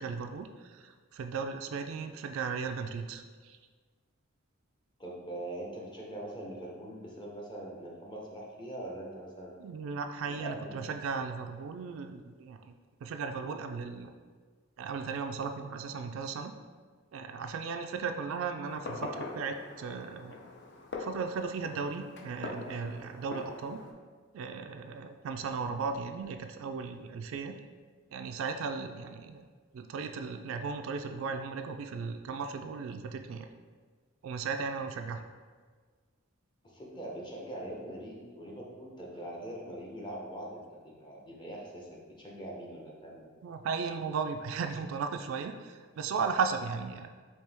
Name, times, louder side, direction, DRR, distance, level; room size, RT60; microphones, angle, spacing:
voice 1, 0.0-3.6 9.6-12.7 13.0-14.1 14.8-16.5 17.1-20.3 21.0-23.8 24.3-27.5 28.1-29.4 29.7-33.5 34.2-35.2 43.4-47.1, right 5 dB, 70° right, 7 dB, 0.3 m, -36 dB
voice 2, 5.0-9.5 10.3-11.0 36.6-40.6 41.0-43.3, right 1 dB, 20° left, -3 dB, 0.8 m, -42 dB
Fireworks, 18.6-23.9, left 3 dB, 55° left, 0.5 m, -43 dB
4.5 x 2.8 x 3.4 m, 1.5 s
head